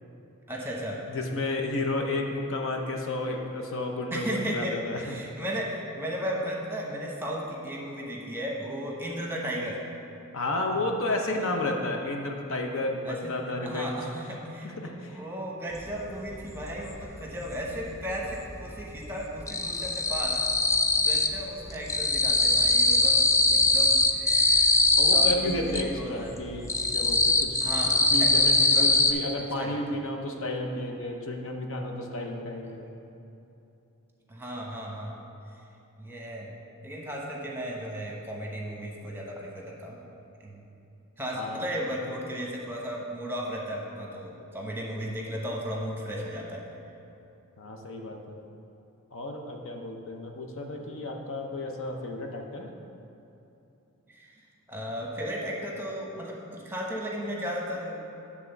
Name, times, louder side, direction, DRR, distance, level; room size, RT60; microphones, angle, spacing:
voice 1, 0.5-1.0 4.1-9.8 11.3-11.8 13.1-13.3 13.6-20.4 21.0-24.8 25.1-26.4 27.6-28.3 28.7-28.9 29.6-29.8 34.3-35.1 36.0-36.5 36.8-40.0 40.4-40.6 41.2-46.6 54.1-58.0, equal, 10° right, -2 dB, 1.0 m, -35 dB
voice 2, 1.1-5.2 10.3-14.1 14.6-15.2 25.0-32.8 41.4-41.6 47.6-48.4 49.1-52.7, left 2 dB, 60° left, 2 dB, 0.7 m, -32 dB
sound 1, 15.9-16.0 16.3-17.5 17.8-18.5 18.8-21.4 21.7-25.9 26.3-29.1, left 2 dB, 15° left, 0.3 m, -22 dB
9.3 x 3.6 x 6.7 m, 2.8 s
head